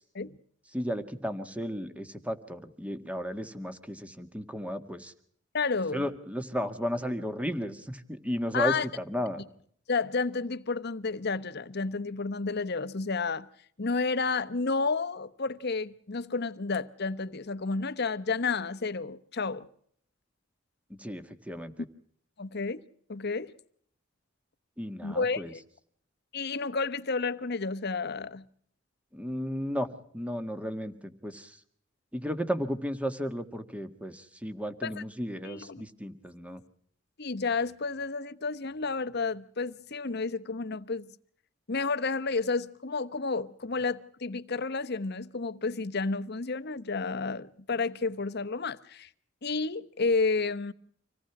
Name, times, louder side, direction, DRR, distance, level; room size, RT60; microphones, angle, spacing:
voice 1, 0.7-5.1 5.9-9.4 21.0-21.9 24.8-25.5 29.1-29.9 30.1-31.6 32.1-36.6, equal, 5° right, 1.7 m, -34 dB
voice 2, 5.5-6.0 8.5-8.9 9.9-13.5 13.8-19.7 22.4-22.8 23.1-23.5 25.0-25.6 26.3-28.4 34.8-35.0 35.4-35.8 37.2-41.1 41.7-49.1 49.4-50.7, left 4 dB, 55° left, 1.0 m, -31 dB
26.0 x 18.5 x 6.0 m
head